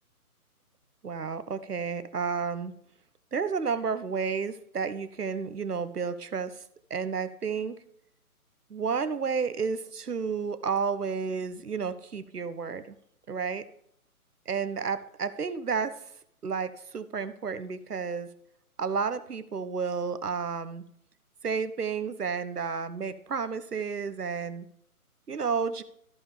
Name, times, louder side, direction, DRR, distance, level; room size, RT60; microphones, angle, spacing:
voice 1, 1.0-2.7 3.3-6.6 6.9-7.7 8.7-13.0 13.3-13.6 14.5-15.9 16.4-18.3 18.8-20.8 21.4-24.7 25.3-25.8, right 5 dB, 90° right, 12 dB, 1.0 m, -31 dB
14.0 x 5.4 x 3.2 m, 0.70 s
figure-of-eight pair, 145°, 45 cm